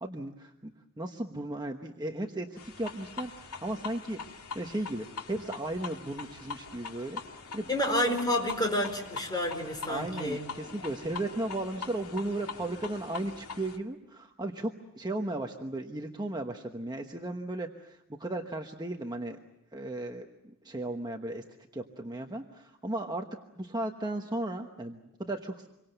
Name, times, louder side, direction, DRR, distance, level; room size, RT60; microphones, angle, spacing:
voice 1, 0.0-0.7 1.0-4.2 4.5-7.2 7.5-7.7 9.9-19.4 19.7-21.4 21.7-23.2 23.6-25.7, right 1 dB, 20° right, 3 dB, 1.2 m, -35 dB
sound 1, 2.6-13.8, left 5 dB, 85° left, 2.3 m, -43 dB
voice 2, 7.7-10.4, left 1 dB, 20° left, 4 dB, 4.5 m, -29 dB
27.5 x 24.0 x 8.0 m, 0.87 s
head